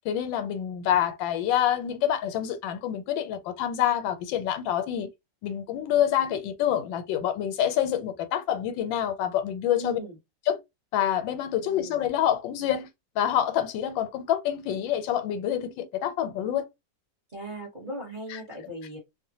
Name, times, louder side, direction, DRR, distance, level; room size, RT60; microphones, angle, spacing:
voice 1, 0.0-5.1 5.4-10.0 10.5-10.6 10.9-12.9 13.2-16.7 18.3-18.4, left 10 dB, 85° left, 1.3 m, -27 dB
voice 2, 9.8-10.2 11.6-12.0 17.3-19.0, right 1 dB, 35° right, 0.9 m, -38 dB
2.9 x 2.1 x 2.7 m
omnidirectional pair, 2.0 m